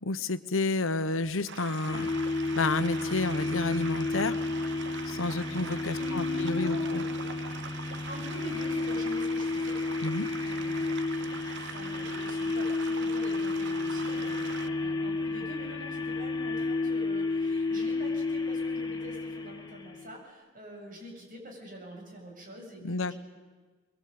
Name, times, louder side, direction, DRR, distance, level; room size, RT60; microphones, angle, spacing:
voice 1, 0.0-2.1 2.6-4.4 5.1-7.0 10.0-10.3 22.8-23.2, left 3 dB, 75° left, 12 dB, 1.1 m, -30 dB
sound 1, 1.5-14.7, right 7 dB, 60° right, 0.9 m, -43 dB
sound 2, 1.9-20.2, left 3 dB, 20° left, 1.7 m, -31 dB
voice 2, 5.9-7.4 8.1-9.8 10.4-23.2, equal, 45° right, 1 dB, 7.5 m, -45 dB
23.5 x 22.0 x 8.8 m, 1.4 s
head